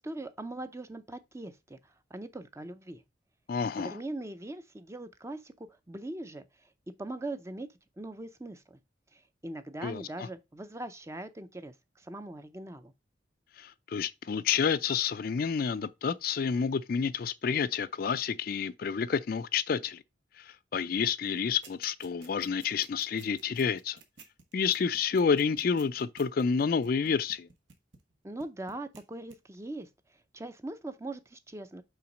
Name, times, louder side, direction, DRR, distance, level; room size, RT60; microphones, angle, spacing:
voice 1, 0.0-3.0 3.8-6.7 7.0-7.7 8.0-8.8 9.1-12.9 28.2-31.8, right 2 dB, 15° right, 0.5 m, -41 dB
voice 2, 3.5-4.0 9.8-10.3 13.6-20.0 20.3-24.0 24.5-27.5, left 6 dB, 50° left, 0.3 m, -29 dB
sound 1, 21.6-28.1 28.4-29.0 29.3-29.4, right 4 dB, 80° right, 1.2 m, -53 dB
5.7 x 3.9 x 5.2 m
head